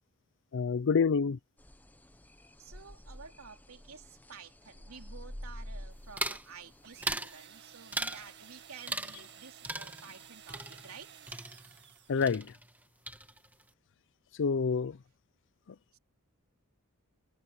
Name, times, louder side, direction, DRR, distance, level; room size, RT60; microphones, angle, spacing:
voice 1, 0.5-1.4 12.1-12.5 14.4-15.0, left 5 dB, 60° left, 0.5 m, -27 dB
sound 1, 1.6-7.2, equal, 10° left, 0.8 m, -48 dB
voice 2, 2.6-11.1 15.9-16.0, right 6 dB, 75° right, 3.2 m, -51 dB
sound 2, 6.2-6.5 7.0-7.4 7.9-8.3 8.9-9.4 9.6-12.0 12.2-12.8 13.1-13.6, right 2 dB, 10° right, 2.0 m, -38 dB
sound 3, 6.8-12.4, right 9 dB, 55° right, 1.8 m, -54 dB
head